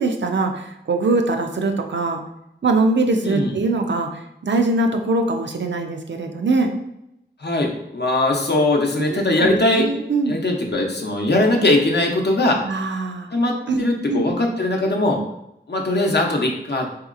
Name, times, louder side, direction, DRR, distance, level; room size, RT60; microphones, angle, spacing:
voice 1, 0.0-2.2 2.6-6.7 9.0-10.4 12.6-13.3 13.7-14.3, right 3 dB, 75° right, 4 dB, 0.4 m, -22 dB
voice 2, 3.2-3.6 7.4-9.9 10.3-12.6 13.3-15.2 15.7-16.9, left 2 dB, 65° left, 1 dB, 0.6 m, -20 dB
3.8 x 2.8 x 2.4 m, 0.83 s
wide cardioid pair, 45°, 19 cm